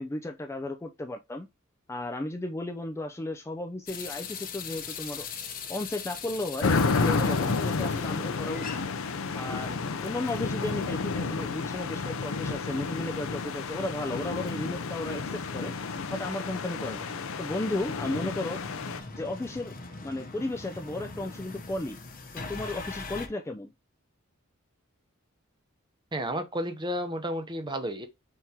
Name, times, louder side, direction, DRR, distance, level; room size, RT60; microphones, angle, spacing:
voice 1, 0.0-1.5 1.9-5.3 5.7-8.8 9.4-15.7 16.1-17.1 17.4-18.6 19.2-19.8 20.0-22.0 22.5-23.7, left 2 dB, 15° left, 0.4 m, -34 dB
sound 1, 3.9-23.3, left 5 dB, 40° left, 0.8 m, -43 dB
sound 2, 6.6-19.0, left 4 dB, 70° left, 0.5 m, -31 dB
voice 2, 26.1-28.1, equal, 20° right, 0.7 m, -32 dB
4.4 x 3.6 x 2.8 m
head